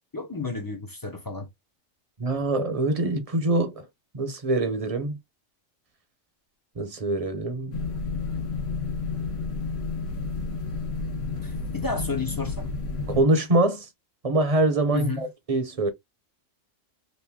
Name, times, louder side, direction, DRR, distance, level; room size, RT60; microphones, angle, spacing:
voice 1, 0.1-1.5 11.4-12.7 14.9-15.2, left 4 dB, 25° left, 0.5 m, -32 dB
voice 2, 2.2-3.9 4.1-5.2 6.8-7.8 13.1-13.9 14.2-15.9, right 2 dB, 35° right, 0.6 m, -24 dB
sound 1, 7.7-13.2, left 4 dB, 70° left, 1.4 m, -31 dB
3.0 x 2.6 x 3.5 m
omnidirectional pair, 1.4 m